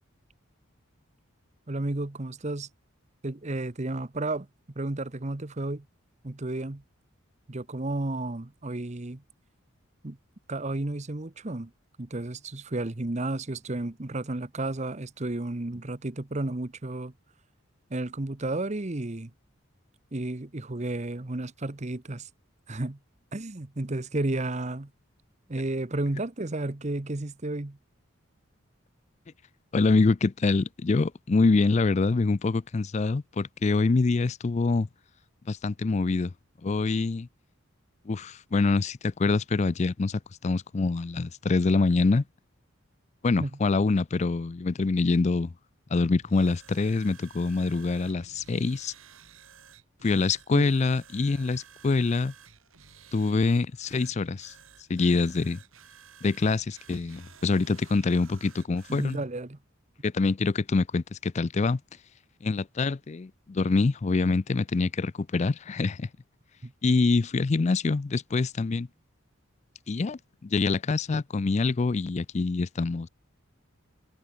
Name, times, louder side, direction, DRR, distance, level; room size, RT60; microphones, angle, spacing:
voice 1, 1.7-2.7 3.2-4.5 4.8-5.8 6.2-6.8 7.5-9.2 10.0-10.2 10.5-11.7 12.0-17.1 17.9-19.3 20.1-22.3 22.7-23.0 23.3-24.9 25.5-27.8 43.4-43.5 50.5-50.7 58.9-59.6 66.6-66.7, right 2 dB, 35° right, 0.9 m, -32 dB
voice 2, 29.7-34.9 35.5-36.3 36.6-37.3 38.1-42.2 43.2-45.5 45.9-48.9 50.0-52.3 53.1-54.5 54.9-55.6 56.2-59.2 60.0-61.8 62.4-66.1 66.8-68.9 69.9-73.1, left 3 dB, 35° left, 0.4 m, -25 dB
sound 1, 46.2-59.2, right 7 dB, 80° right, 3.2 m, -53 dB
head